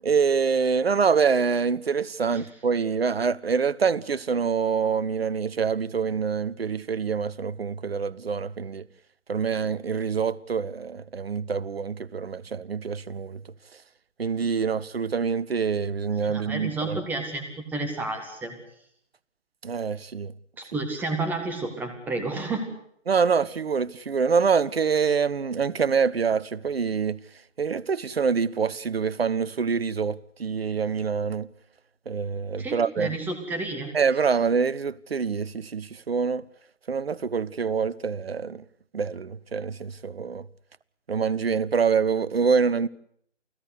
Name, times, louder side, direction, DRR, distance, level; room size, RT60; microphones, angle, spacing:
voice 1, 0.0-8.8 9.3-13.4 14.2-17.0 19.6-20.3 23.1-27.2 27.6-31.5 32.1-33.2 33.9-36.4 36.9-38.6 38.9-40.4 41.1-42.9, right 6 dB, 55° right, 0.9 m, -25 dB
voice 2, 16.3-18.6 20.6-22.7 32.6-33.9, right 2 dB, 5° right, 1.9 m, -31 dB
29.0 x 16.5 x 8.1 m
figure-of-eight pair, 140°, 36 cm